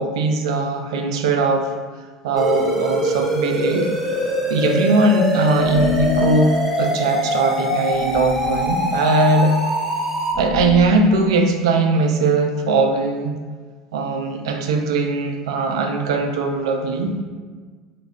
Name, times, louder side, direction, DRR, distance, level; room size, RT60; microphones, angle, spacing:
voice 1, 0.0-1.7 2.2-3.9 4.5-9.6 10.4-13.3 13.9-17.2, right 3 dB, 80° right, 4 dB, 0.3 m, -20 dB
sound 1, 2.3-10.3, equal, 5° right, 0.7 m, -23 dB
sound 2, 5.6-6.3 7.9-8.8 10.3-11.1, left 10 dB, 25° left, 0.4 m, -27 dB
3.4 x 2.2 x 2.3 m, 1.5 s
hypercardioid pair, 80°, 3 cm